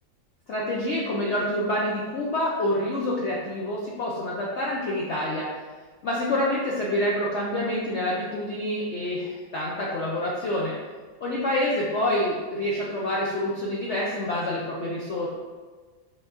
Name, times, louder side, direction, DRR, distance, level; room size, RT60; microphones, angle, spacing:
voice 1, 0.5-5.5 6.0-10.7 11.2-15.3, left 1 dB, 85° left, -4 dB, 0.6 m, -27 dB
5.9 x 3.5 x 2.5 m, 1.4 s
omnidirectional pair, 2.0 m